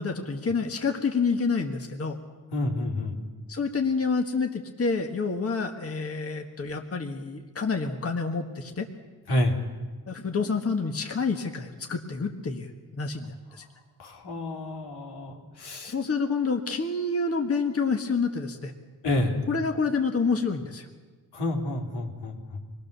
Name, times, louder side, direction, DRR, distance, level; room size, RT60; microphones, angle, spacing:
voice 1, 0.0-2.2 3.5-8.9 10.1-13.6 15.9-18.7 19.5-20.9, left 4 dB, 35° left, 3 dB, 1.6 m, -28 dB
voice 2, 2.5-3.2 9.3-9.6 14.0-15.9 19.0-19.4 21.3-22.6, left 1 dB, 85° left, 1 dB, 3.7 m, -29 dB
25.5 x 20.0 x 6.9 m, 1.4 s
wide cardioid pair, 115°, 39 cm